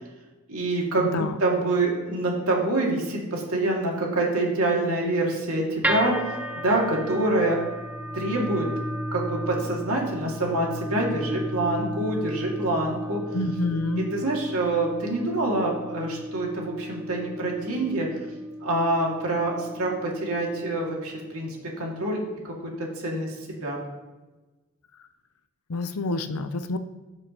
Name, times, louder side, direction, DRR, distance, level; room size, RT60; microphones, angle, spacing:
voice 1, 0.5-6.1 6.6-7.6 8.1-8.7 9.1-13.2 14.1-18.1 18.6-21.5 21.8-23.8, right 2 dB, 80° right, -2 dB, 2.2 m, -26 dB
voice 2, 1.0-1.4 13.3-14.1 25.7-26.8, left 2 dB, 80° left, 9 dB, 0.6 m, -28 dB
sound 1, 5.8-22.0, equal, 5° right, 0.6 m, -34 dB
16.5 x 6.2 x 3.0 m, 1.2 s
head